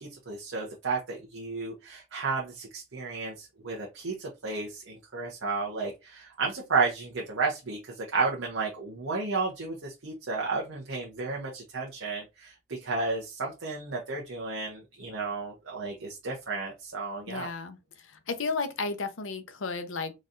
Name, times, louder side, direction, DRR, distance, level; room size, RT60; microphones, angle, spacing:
voice 1, 0.0-17.5, right 4 dB, 70° right, 0.9 m, -32 dB
voice 2, 17.3-20.1, left 4 dB, 75° left, 0.7 m, -33 dB
3.9 x 3.1 x 2.6 m
head